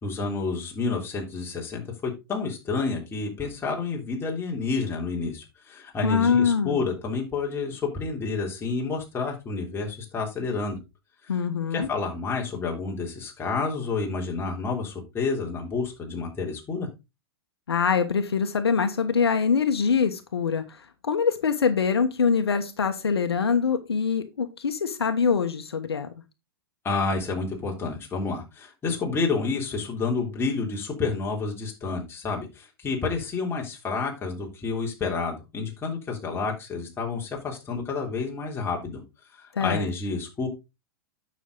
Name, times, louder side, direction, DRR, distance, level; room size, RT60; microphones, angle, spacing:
voice 1, 0.0-10.8 11.7-16.9 26.8-39.0 39.4-40.5, left 4 dB, 20° left, 0 dB, 3.3 m, -29 dB
voice 2, 6.0-6.8 11.3-11.9 17.7-26.1 39.5-39.9, left 6 dB, 80° left, 8 dB, 1.3 m, -24 dB
9.5 x 6.5 x 3.9 m, 0.25 s
hypercardioid pair, 110°, 13 cm